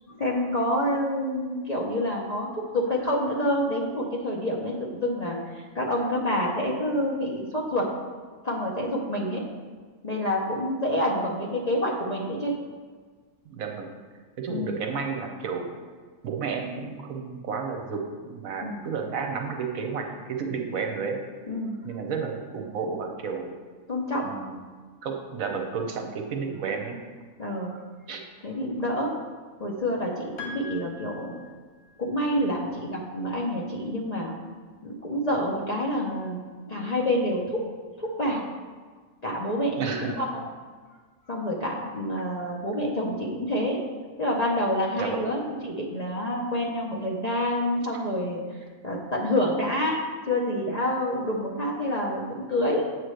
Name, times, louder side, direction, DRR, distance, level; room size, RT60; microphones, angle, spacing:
voice 1, 0.2-2.5 2.7-7.9 8.4-9.4 10.0-12.5 14.5-14.8 18.6-18.9 21.5-21.7 23.9-24.3 27.4-27.8 28.4-29.1 29.6-31.3 32.0-34.3 34.8-36.4 36.7-37.6 38.0-38.4 39.2-40.0 40.3-40.4 41.3-43.8 44.2-48.4 48.8-50.0 50.3-52.8, left 1 dB, 35° left, -3 dB, 0.7 m, -27 dB
voice 2, 13.4-14.0 14.4-15.7 16.2-18.0 18.2-21.2 21.8-23.5 24.2-24.6 25.0-27.0 28.1-28.2 39.8-40.2 45.0-45.2, right 5 dB, 65° right, 3 dB, 1.2 m, -31 dB
Piano, 30.4-32.1, left 3 dB, 75° left, 1.3 m, -42 dB
8.2 x 3.2 x 6.4 m, 1.5 s
omnidirectional pair, 1.6 m